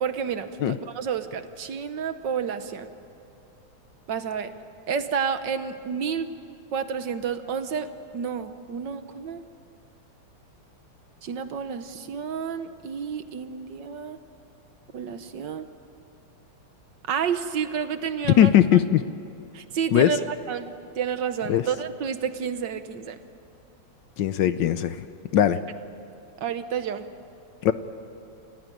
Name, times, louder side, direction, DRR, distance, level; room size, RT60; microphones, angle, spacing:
voice 1, 0.0-2.9 4.1-4.5 4.9-6.3 6.7-9.4 11.2-14.2 14.9-15.7 17.1-18.5 19.5-23.2 26.4-27.1, right 7 dB, 65° right, 10 dB, 1.5 m, -30 dB
voice 2, 18.4-19.0 19.9-20.1 21.5-21.6 24.2-25.0 25.3-25.6 27.6-27.7, left 11 dB, 70° left, 12 dB, 1.3 m, -19 dB
29.0 x 15.5 x 9.1 m, 2.8 s
omnidirectional pair, 2.3 m